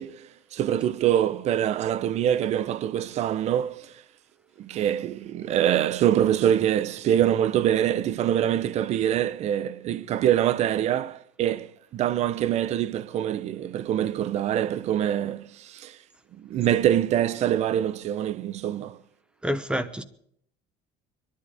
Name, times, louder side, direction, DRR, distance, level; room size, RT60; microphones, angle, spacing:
voice 1, 0.0-4.0 4.6-16.0 16.4-19.0, right 11 dB, 45° right, 0.7 m, -25 dB
voice 2, 19.4-20.0, equal, 5° right, 1.1 m, -27 dB
23.5 x 11.5 x 5.0 m
cardioid pair, 140°, 16 cm